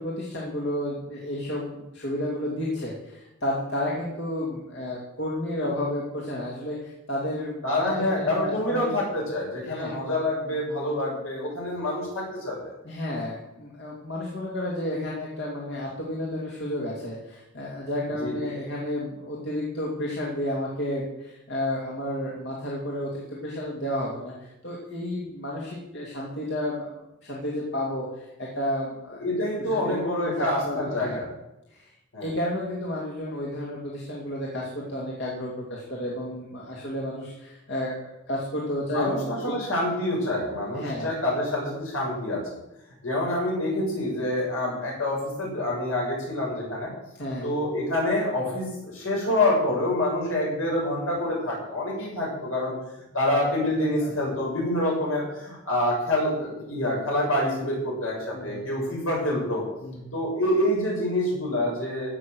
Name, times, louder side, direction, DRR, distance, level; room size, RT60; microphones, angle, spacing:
voice 1, 0.0-7.6 8.2-9.0 9.6-10.0 12.8-26.9 27.2-29.2 29.7-29.9 30.2-31.2 31.7-31.9 32.2-39.3 40.7-41.1 47.2-47.5 54.0-54.1 58.3-58.7 59.8-60.2, left 1 dB, 55° left, -4 dB, 2.8 m, -31 dB
voice 2, 7.6-12.7 18.2-18.4 29.2-31.3 32.1-32.3 38.9-42.6 43.0-46.9 47.4-52.7 53.1-59.6 60.1-62.1, left 1 dB, 75° left, -3 dB, 6.7 m, -27 dB
15.5 x 6.5 x 7.9 m, 0.90 s
head